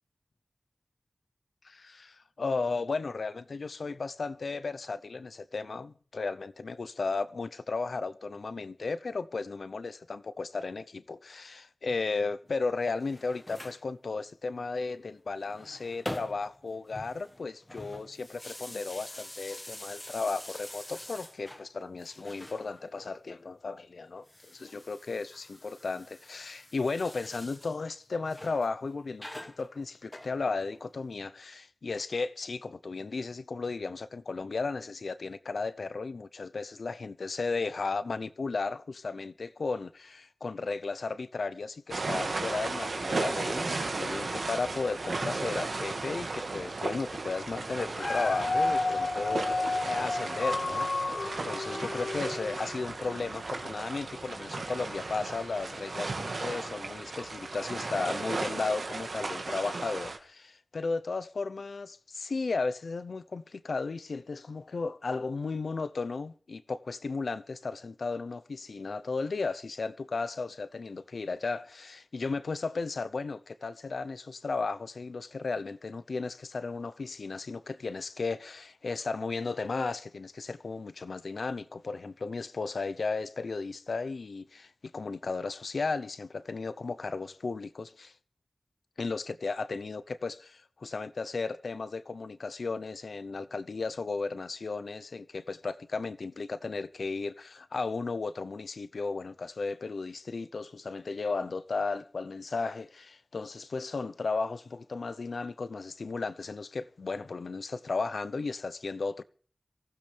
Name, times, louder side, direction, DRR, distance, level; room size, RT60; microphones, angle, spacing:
voice 1, 1.6-88.1 89.0-109.2, left 4 dB, 85° left, 0.7 m, -35 dB
sound 1, 12.9-13.8 15.3-16.6 16.9-21.7 22.0-23.1 24.2-27.8 28.3-28.7 29.2-30.8, left 1 dB, 25° left, 1.5 m, -45 dB
sound 2, 41.9-60.2, right 3 dB, 85° right, 1.9 m, -35 dB
Dog, 47.8-53.1 53.6-53.7, left 3 dB, 65° left, 0.9 m, -31 dB
23.0 x 15.0 x 3.4 m
wide cardioid pair, 55°, 0 cm